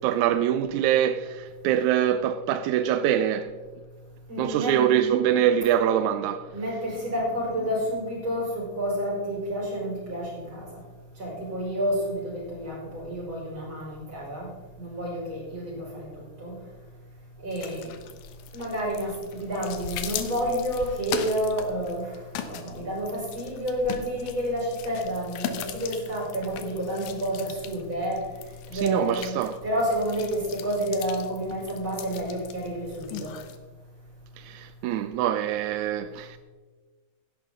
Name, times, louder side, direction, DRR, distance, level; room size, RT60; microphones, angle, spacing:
voice 1, 0.0-3.5 4.4-6.5 28.7-29.6 34.4-36.4, right 10 dB, 80° right, 1.7 m, -24 dB
voice 2, 4.3-4.8 6.5-10.7 11.2-14.5 14.8-16.1 16.4-16.6 17.4-17.9 18.5-22.2 22.5-28.2 28.7-33.3, equal, 35° right, 5.5 m, -30 dB
sound 1, 17.5-33.6, left 9 dB, 80° left, 2.5 m, -39 dB
16.0 x 11.0 x 3.7 m
omnidirectional pair, 3.9 m